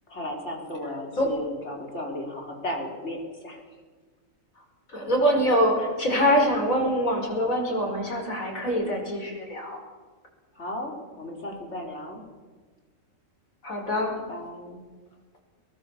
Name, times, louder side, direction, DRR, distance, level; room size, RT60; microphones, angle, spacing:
voice 1, 0.1-3.6 10.6-12.3 14.1-14.8, left 1 dB, 55° left, 1 dB, 4.4 m, -35 dB
voice 2, 4.9-9.8 13.6-14.1, equal, 85° left, 0 dB, 5.8 m, -24 dB
22.5 x 20.5 x 7.3 m, 1.5 s
omnidirectional pair, 1.4 m